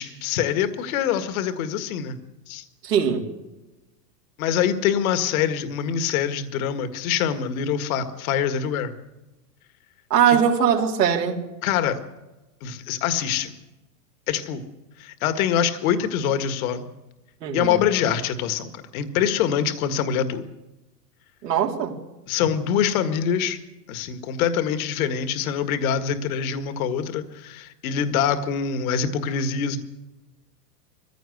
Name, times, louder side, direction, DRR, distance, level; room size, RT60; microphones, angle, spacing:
voice 1, 0.0-2.2 2.5-2.6 4.4-8.9 10.3-10.4 11.6-12.0 12.6-13.5 14.3-14.6 15.0-16.9 17.5-20.4 22.3-23.6 23.9-29.8, left 8 dB, 60° left, 1.9 m, -24 dB
voice 2, 2.8-3.3 10.1-11.4 17.4-17.8 21.4-21.9, right 8 dB, 90° right, 3.4 m, -21 dB
21.5 x 15.5 x 8.0 m
hypercardioid pair, 135°, 48 cm